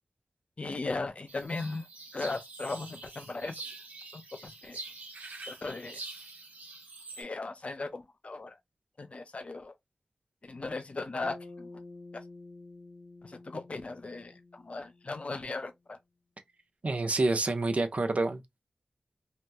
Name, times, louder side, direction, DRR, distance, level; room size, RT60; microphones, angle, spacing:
voice 1, 0.6-1.9 2.1-3.6 4.1-4.8 5.5-6.0 7.2-8.6 9.0-9.7 10.4-11.7 12.1-12.2 13.2-16.0, left 3 dB, 45° left, 0.5 m, -37 dB
sound 1, 1.3-7.2, right 3 dB, 80° right, 0.8 m, -45 dB
Bass guitar, 11.2-15.6, left 2 dB, 70° left, 1.1 m, -50 dB
voice 2, 16.8-18.4, right 2 dB, 50° right, 0.5 m, -27 dB
2.7 x 2.0 x 3.4 m
wide cardioid pair, 95°, 3 cm